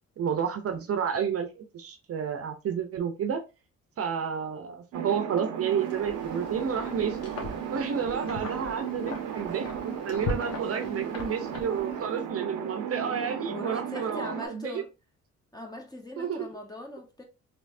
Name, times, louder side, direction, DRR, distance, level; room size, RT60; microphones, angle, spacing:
voice 1, 0.2-3.4 4.0-7.3 7.7-14.8 16.2-16.5, right 7 dB, 50° right, 0.6 m, -31 dB
sound 1, 4.9-14.5, right 8 dB, 90° right, 0.6 m, -35 dB
Wind, 5.7-12.2, left 3 dB, 55° left, 1.1 m, -40 dB
voice 2, 13.5-14.9 15.5-17.2, left 1 dB, 15° left, 1.0 m, -41 dB
3.1 x 3.1 x 2.6 m
cardioid pair, 90°, 30 cm